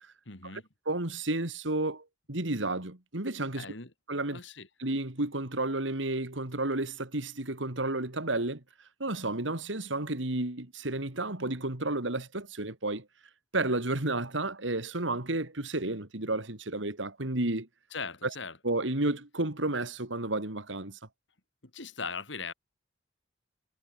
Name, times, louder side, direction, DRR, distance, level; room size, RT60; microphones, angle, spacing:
voice 1, 0.2-0.6 3.6-3.9 4.3-4.7 17.9-18.6 21.7-22.5, left 5 dB, 80° left, 3.5 m, -39 dB
voice 2, 0.9-3.7 4.1-4.4 4.8-8.6 9.0-13.1 13.5-17.7 18.2-18.3 18.6-21.0, right 2 dB, 90° right, 3.0 m, -31 dB
head